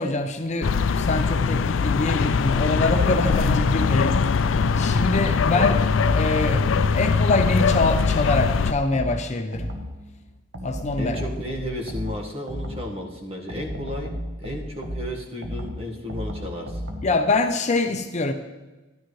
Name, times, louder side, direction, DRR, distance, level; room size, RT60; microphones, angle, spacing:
voice 1, 0.0-4.3 4.8-5.8 6.1-9.7 10.6-11.3 17.0-18.3, left 2 dB, 35° left, 6 dB, 0.7 m, -24 dB
sound 1, 0.6-8.7, left 5 dB, 70° left, 0.4 m, -21 dB
voice 2, 5.5-5.9 11.0-16.8, left 1 dB, 30° right, 0 dB, 1.6 m, -33 dB
sound 2, 5.6-7.1 7.6-10.1 10.5-13.0 13.5-17.3, equal, 85° right, 1.5 m, -34 dB
13.0 x 11.5 x 3.2 m, 1.1 s
head